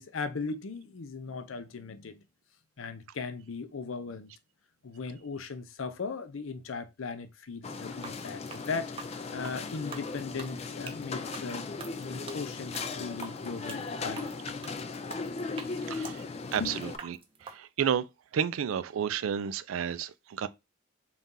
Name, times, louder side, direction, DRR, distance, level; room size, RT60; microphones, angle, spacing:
voice 1, 0.0-2.3 2.8-4.3 4.8-8.9 9.3-11.6 12.0-14.3 16.0-16.1 16.6-16.8, left 4 dB, 75° left, 0.6 m, -38 dB
sound 1, 7.6-17.0, left 4 dB, 30° left, 0.3 m, -37 dB
sound 2, 7.9-17.6, right 5 dB, 25° right, 0.5 m, -46 dB
voice 2, 15.9-16.2 16.5-17.2 17.5-18.0 18.3-20.5, right 8 dB, 80° right, 0.4 m, -31 dB
4.1 x 2.3 x 3.7 m
head